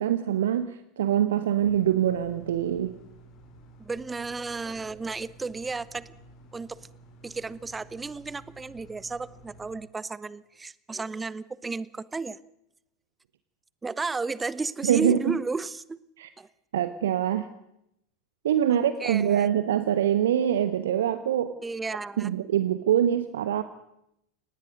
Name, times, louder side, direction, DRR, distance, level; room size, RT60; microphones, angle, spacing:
voice 1, 0.0-2.9 14.8-15.4 16.2-16.3 16.7-17.5 18.4-21.5 22.2-23.6, right 10 dB, 65° right, 12 dB, 1.0 m, -24 dB
sound 1, 1.6-9.7, right 2 dB, 45° left, 4.7 m, -52 dB
voice 2, 3.8-6.1 6.5-6.8 7.2-12.4 13.8-16.0 16.4-16.5 19.0-19.5 21.6-22.3, right 4 dB, 15° right, 19 dB, 0.8 m, -33 dB
24.5 x 19.0 x 6.6 m, 0.80 s
figure-of-eight pair, 85°, 0 cm